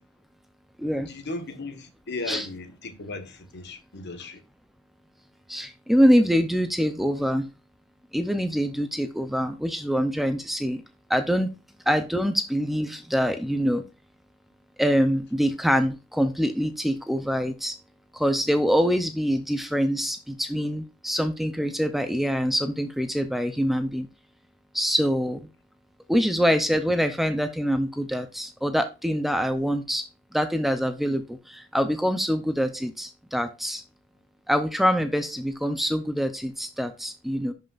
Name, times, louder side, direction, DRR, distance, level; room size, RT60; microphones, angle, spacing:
voice 1, 0.9-4.4, left 3 dB, 55° left, 1.3 m, -36 dB
voice 2, 5.5-7.5 8.1-10.8 11.1-11.5 11.9-13.8 14.8-17.7 18.1-24.1 24.7-25.4 26.1-30.0 30.3-33.8 34.5-37.5, equal, ahead, 0.5 m, -24 dB
11.5 x 5.4 x 2.5 m
head